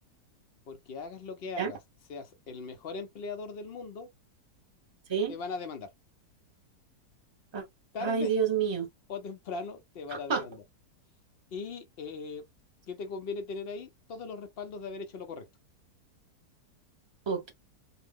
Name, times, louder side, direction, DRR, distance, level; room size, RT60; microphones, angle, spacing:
voice 1, 0.7-1.8 2.1-4.1 5.3-5.9 7.9-8.4 9.1-10.6 11.5-12.5 12.9-15.5, left 4 dB, 85° left, 0.5 m, -39 dB
voice 2, 8.0-8.9 10.3-10.4 17.3-17.5, right 6 dB, 40° right, 0.4 m, -28 dB
2.8 x 2.1 x 3.4 m
omnidirectional pair, 1.8 m